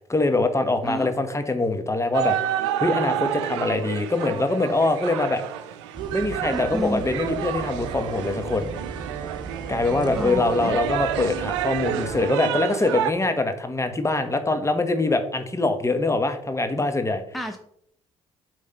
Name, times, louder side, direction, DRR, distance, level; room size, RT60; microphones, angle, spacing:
voice 1, 0.1-2.4 2.8-5.4 6.1-8.7 9.7-17.2, left 2 dB, 20° left, 8 dB, 1.2 m, -23 dB
sound 1, 2.1-13.1, right 11 dB, 85° right, 0.5 m, -29 dB
sound 2, 5.9-12.3, right 4 dB, 30° right, 1.2 m, -38 dB
voice 2, 6.5-7.0 10.2-10.8 17.3-17.6, equal, ahead, 4 dB, 0.8 m, -30 dB
8.4 x 3.3 x 5.6 m, 0.72 s
hypercardioid pair, 55°, 14 cm